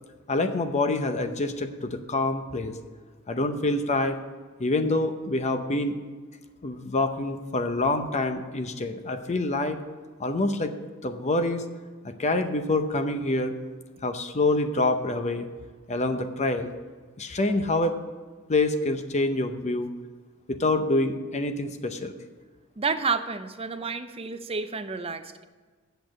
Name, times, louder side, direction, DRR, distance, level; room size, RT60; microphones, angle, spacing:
voice 1, 0.3-2.7 3.3-4.2 4.6-5.9 6.6-9.8 10.2-10.7 11.0-11.6 12.0-13.5 14.0-15.5 15.9-16.7 17.2-18.0 18.5-19.9 20.5-22.1, left 2 dB, 35° left, 8 dB, 0.7 m, -26 dB
voice 2, 22.8-25.4, right 4 dB, 25° right, 10 dB, 0.5 m, -30 dB
8.5 x 6.8 x 7.6 m, 1.4 s
head